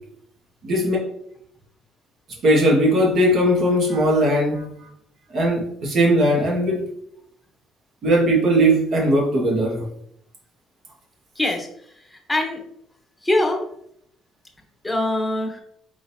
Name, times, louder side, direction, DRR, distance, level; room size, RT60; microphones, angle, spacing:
voice 1, 0.6-1.0 2.4-4.7 5.3-6.8 8.0-9.8, right 1 dB, 55° right, -2 dB, 1.7 m, -18 dB
voice 2, 11.4-11.7 12.1-12.6 13.2-13.6 14.8-15.6, left 1 dB, 10° left, 2 dB, 1.0 m, -23 dB
4.9 x 3.9 x 2.8 m, 0.71 s
cardioid pair, 115°, 0 cm